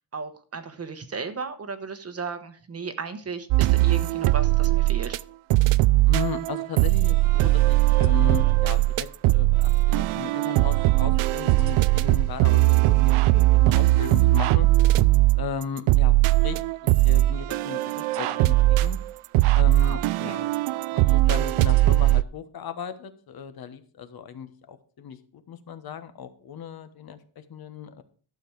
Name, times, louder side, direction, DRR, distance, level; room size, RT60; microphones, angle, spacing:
voice 1, 0.0-5.2 19.8-20.4, right 5 dB, 30° right, 9 dB, 1.1 m, -35 dB
sound 1, 3.5-5.2 5.5-22.2, right 18 dB, 85° right, 0.5 m, -20 dB
voice 2, 6.1-14.7 15.3-19.0 19.5-20.5 20.9-28.0, left 7 dB, 45° left, 10 dB, 1.2 m, -36 dB
12.0 x 7.0 x 4.7 m, 0.41 s
cardioid pair, 145°, 49 cm